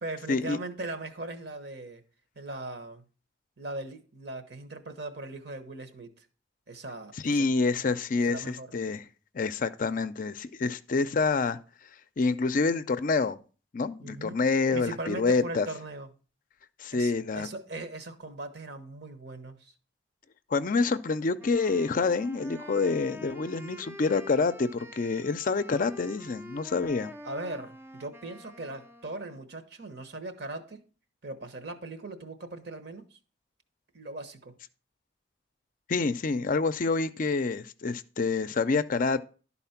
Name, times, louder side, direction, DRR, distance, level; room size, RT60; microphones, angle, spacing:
voice 1, 0.0-2.0 2.4-3.0 3.6-6.2 6.7-7.5 8.2-8.7 14.0-14.4 14.7-16.1 16.9-19.7 27.2-30.8 31.2-33.2 33.9-34.5, right 2 dB, 60° right, 1.1 m, -39 dB
voice 2, 7.2-9.0 9.3-11.6 12.2-13.4 13.7-15.7 16.8-17.5 20.5-27.1 35.9-39.2, left 4 dB, 45° left, 0.4 m, -27 dB
Wind instrument woodwind instrument, 21.4-29.5, left 1 dB, 10° right, 0.4 m, -46 dB
11.5 x 4.2 x 5.7 m
head